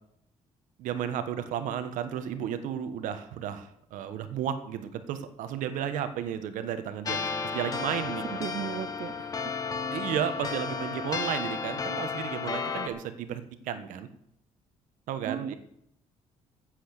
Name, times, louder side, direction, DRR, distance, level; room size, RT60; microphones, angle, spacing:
voice 1, 0.8-7.2 7.5-8.2 9.9-14.1 15.1-15.6, right 9 dB, 90° right, 9 dB, 1.4 m, -33 dB
sound 1, 7.1-12.9, left 5 dB, 30° left, 1.1 m, -33 dB
voice 2, 8.2-9.5 10.5-10.6 15.3-15.5, right 10 dB, 55° right, 16 dB, 0.7 m, -36 dB
14.5 x 8.1 x 6.8 m, 0.75 s
cardioid pair, 170°, 13 cm